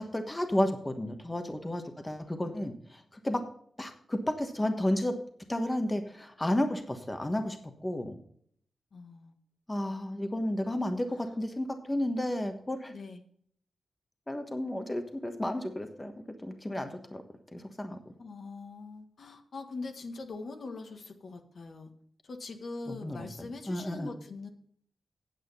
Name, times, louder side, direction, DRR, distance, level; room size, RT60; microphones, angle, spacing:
voice 1, 0.0-3.4 3.8-5.1 5.5-8.2 9.7-12.9 14.3-16.1 16.4-17.2 17.5-18.0 23.0-23.2 23.6-24.1, left 1 dB, 15° left, 6 dB, 1.2 m, -32 dB
voice 2, 8.9-9.3 11.1-11.4 12.9-13.2 18.2-21.9 22.2-24.5, left 3 dB, 60° left, 5 dB, 1.5 m, -42 dB
9.0 x 7.7 x 5.4 m, 0.62 s
cardioid pair, 85°, 0 cm